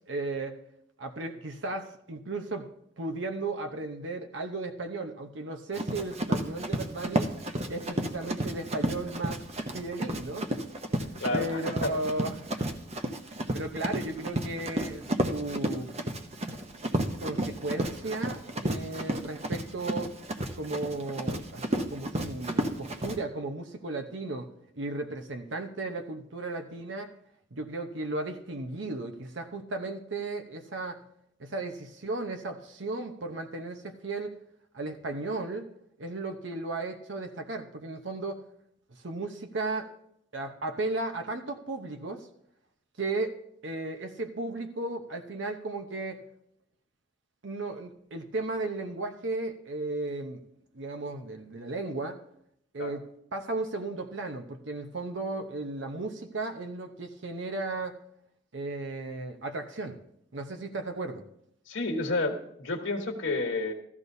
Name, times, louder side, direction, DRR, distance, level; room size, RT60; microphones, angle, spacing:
voice 1, 0.1-0.6 1.0-2.7 3.0-7.3 7.7-9.4 9.7-10.5 11.3-12.4 12.9-13.0 13.5-15.9 17.1-20.1 20.6-27.1 27.5-31.0 31.4-34.3 34.7-35.7 36.0-38.4 38.9-39.9 40.3-42.3 43.0-43.4 43.6-46.2 47.4-50.4 50.7-52.2 52.7-58.0 58.5-60.0 60.3-61.2, right 2 dB, 70° right, 6 dB, 0.9 m, -35 dB
Run, 5.7-23.2, right 1 dB, 35° right, 0.9 m, -32 dB
voice 2, 11.2-11.9 52.8-52.9 61.7-63.7, left 2 dB, 75° left, 1 dB, 1.3 m, -30 dB
15.5 x 13.5 x 2.7 m, 0.74 s
head